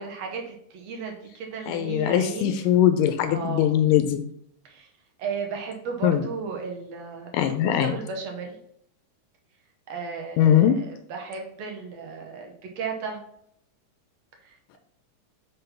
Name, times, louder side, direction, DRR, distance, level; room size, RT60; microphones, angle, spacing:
voice 1, 0.0-2.6 3.3-3.7 4.6-4.9 5.2-8.6 9.9-13.2 14.4-14.5, right 5 dB, 70° right, 2 dB, 1.7 m, -35 dB
voice 2, 1.7-4.2 6.0-6.3 7.3-8.0 10.4-10.8, left 10 dB, 85° left, 8 dB, 2.1 m, -21 dB
5.6 x 3.8 x 5.6 m, 0.71 s
omnidirectional pair, 3.8 m